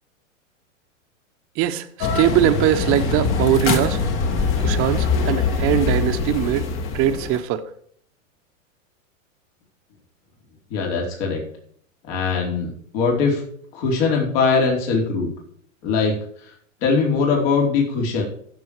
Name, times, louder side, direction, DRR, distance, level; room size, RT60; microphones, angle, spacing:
voice 1, 1.6-4.0 4.6-6.7 6.9-7.6, right 11 dB, 35° right, 8 dB, 1.2 m, -21 dB
sound 1, 2.0-7.4, left 5 dB, 30° left, 2.0 m, -23 dB
voice 2, 10.7-11.4 12.1-13.4 13.7-15.3 15.8-16.5 16.8-18.2, left 4 dB, 50° left, 0 dB, 4.6 m, -21 dB
14.5 x 7.4 x 4.9 m, 0.62 s
hypercardioid pair, 125°, 40 cm